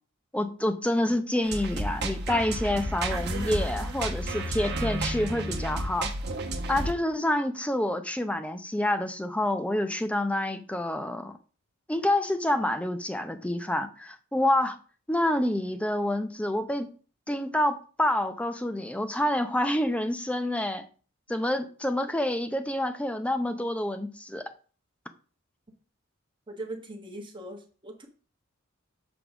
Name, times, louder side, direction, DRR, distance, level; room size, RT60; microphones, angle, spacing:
voice 1, 0.3-6.1 6.7-11.3 11.9-14.8 15.1-16.9 17.3-20.8 21.3-24.4, left 1 dB, 5° left, 0.6 m, -28 dB
sound 1, 1.4-6.9, right 1 dB, 55° right, 1.1 m, -31 dB
voice 2, 26.5-28.1, right 1 dB, 25° right, 1.2 m, -40 dB
6.9 x 3.5 x 5.9 m
head